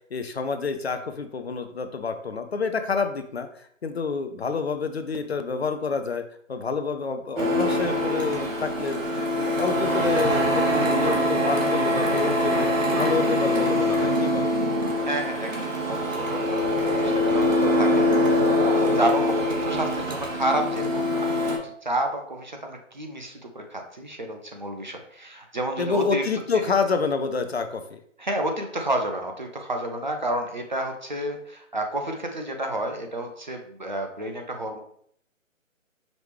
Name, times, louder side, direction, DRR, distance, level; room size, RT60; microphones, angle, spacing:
voice 1, 0.1-6.2 6.5-9.1 9.4-12.7 12.9-14.5 25.8-28.0, left 4 dB, 55° left, 8 dB, 0.5 m, -28 dB
Printer, 7.4-21.6, left 1 dB, 70° right, 1.3 m, -23 dB
voice 2, 15.0-26.2 26.7-26.8 28.2-34.8, right 1 dB, 35° right, 3 dB, 0.5 m, -30 dB
5.1 x 3.1 x 3.2 m, 0.65 s
figure-of-eight pair, 145°, 40 cm